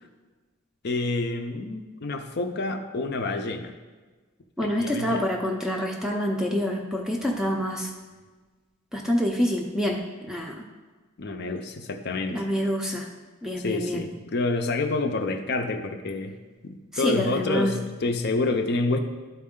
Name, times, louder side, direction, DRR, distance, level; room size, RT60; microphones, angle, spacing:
voice 1, 0.8-3.7 4.6-5.3 11.2-12.4 13.6-16.4 16.6-19.0, left 3 dB, 50° left, 7 dB, 0.6 m, -28 dB
voice 2, 4.6-7.9 8.9-10.0 10.3-10.6 12.3-13.1 13.4-14.1 16.9-17.7, equal, ahead, 0 dB, 0.5 m, -26 dB
11.5 x 4.3 x 3.7 m, 1.3 s
head